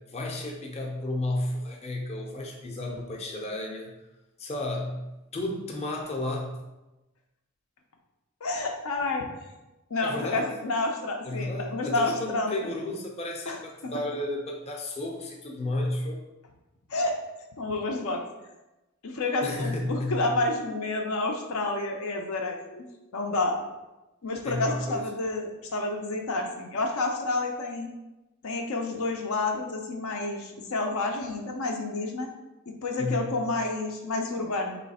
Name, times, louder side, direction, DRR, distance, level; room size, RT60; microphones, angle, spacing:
voice 1, 0.1-3.9 4.4-5.1 5.3-6.6 10.0-10.5 11.2-16.2 19.4-20.3 24.4-25.0 33.0-33.3, left 1 dB, 30° left, -1 dB, 0.6 m, -32 dB
voice 2, 8.4-9.3 9.9-12.7 13.5-13.9 16.9-17.2 17.6-18.2 19.0-22.8 23.1-23.6 24.2-27.9 28.4-32.3 32.8-34.8, left 2 dB, 75° left, 2 dB, 0.5 m, -29 dB
3.2 x 3.0 x 4.1 m, 1.0 s
head